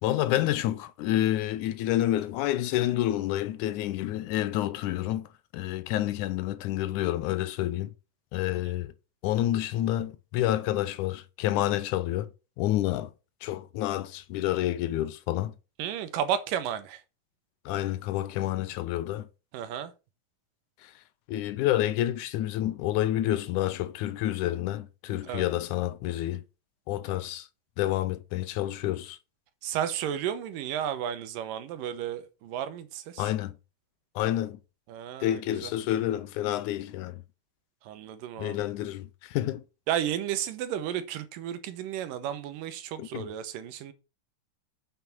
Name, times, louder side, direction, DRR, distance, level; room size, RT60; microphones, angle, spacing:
voice 1, 0.0-5.3 5.5-7.9 8.3-8.9 9.2-12.3 12.6-13.1 13.4-15.5 17.7-19.3 20.8-20.9 21.3-26.4 26.9-27.5 27.8-29.2 33.2-33.5 34.2-34.6 35.2-37.2 38.4-39.6 43.0-43.3, left 13 dB, 80° left, 1.9 m, -29 dB
voice 2, 15.8-17.0 19.5-19.9 25.3-25.5 29.6-33.3 34.9-35.7 37.9-38.6 39.9-43.9, right 10 dB, 80° right, 2.6 m, -33 dB
7.5 x 5.6 x 5.9 m
omnidirectional pair, 3.9 m